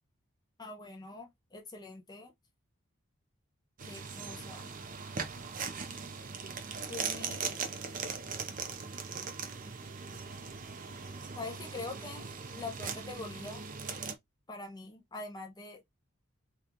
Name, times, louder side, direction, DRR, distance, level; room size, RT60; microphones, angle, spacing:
voice 1, 0.6-2.3 3.8-4.7 6.9-7.4 11.4-12.3 12.6-13.6 14.5-15.8, left 3 dB, 20° left, 0.5 m, -44 dB
sound 1, 3.8-14.1, right 5 dB, 40° right, 0.5 m, -40 dB
2.9 x 2.3 x 3.6 m
head